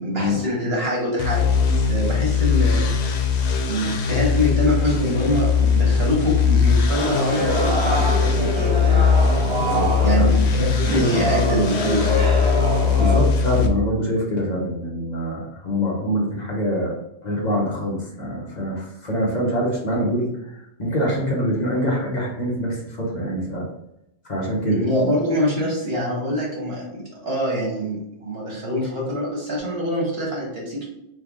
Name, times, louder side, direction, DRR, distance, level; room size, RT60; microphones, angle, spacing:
voice 1, 0.0-2.9 3.7-9.3 10.0-12.1 24.6-30.8, equal, 70° right, -3 dB, 1.6 m, -24 dB
sound 1, 1.2-13.7, left 6 dB, 90° left, 0.9 m, -20 dB
sound 2, 6.9-13.2, right 1 dB, 30° right, 1.0 m, -25 dB
voice 2, 9.6-10.4 13.0-16.9 17.2-23.7 24.3-24.8, equal, 45° left, -3 dB, 1.0 m, -25 dB
3.5 x 3.4 x 3.5 m, 0.82 s
omnidirectional pair, 1.1 m